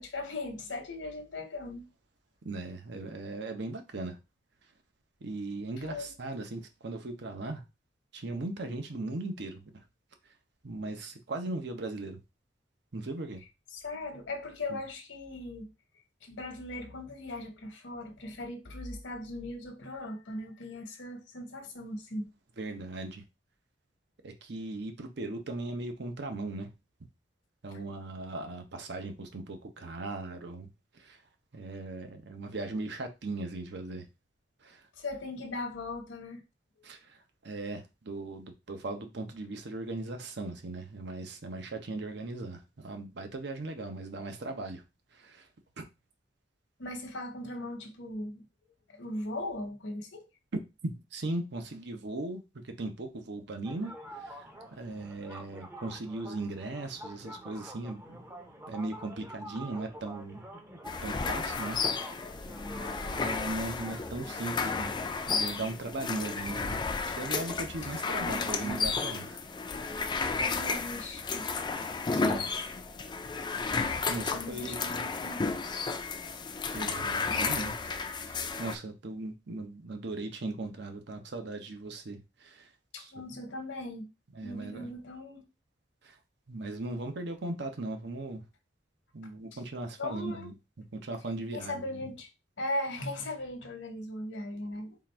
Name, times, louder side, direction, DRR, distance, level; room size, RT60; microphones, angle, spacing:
voice 1, 0.0-1.9 5.8-6.1 13.7-15.7 16.2-22.3 35.0-36.4 46.8-48.4 48.9-50.2 68.2-68.9 70.4-71.5 74.3-75.5 82.9-84.0 84.4-85.4 90.0-90.5 91.5-92.3 92.6-95.0, left 2 dB, 75° left, 1.0 m, -39 dB
voice 2, 2.4-4.2 5.2-7.6 8.1-9.6 10.6-12.2 12.9-13.4 14.7-14.8 22.6-23.2 24.2-26.7 27.6-30.7 30.9-31.2 31.5-34.1 34.6-34.9 36.8-44.8 45.1-45.5 45.8-45.9 50.8-58.3 58.7-60.4 61.0-62.2 63.0-65.0 65.3-66.8 67.1-69.4 69.7-70.0 72.1-72.5 73.5-73.7 74.1-75.0 76.7-77.8 78.1-82.7 83.0-83.1 84.3-84.9 86.0-86.2 86.5-88.4 89.1-90.5 90.9-92.1, right 2 dB, 65° right, 0.8 m, -38 dB
sound 1, 53.7-64.9, right 1 dB, 15° right, 0.6 m, -47 dB
sound 2, 60.8-78.8, left 4 dB, 25° left, 0.4 m, -33 dB
3.8 x 2.5 x 4.4 m
head